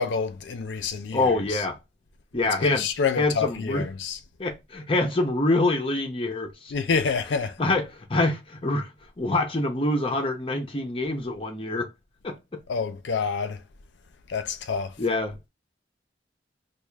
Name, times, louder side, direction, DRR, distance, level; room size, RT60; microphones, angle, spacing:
voice 1, 0.0-1.7 2.4-4.2 6.7-7.8 12.7-13.6 14.3-14.9, left 5 dB, 90° left, 0.5 m, -28 dB
voice 2, 1.1-1.8 2.3-2.8 3.2-3.9 4.4-6.7 7.6-8.9 9.2-11.9 12.2-12.6 15.0-15.4, left 2 dB, 30° left, 0.6 m, -25 dB
4.8 x 2.4 x 2.3 m
head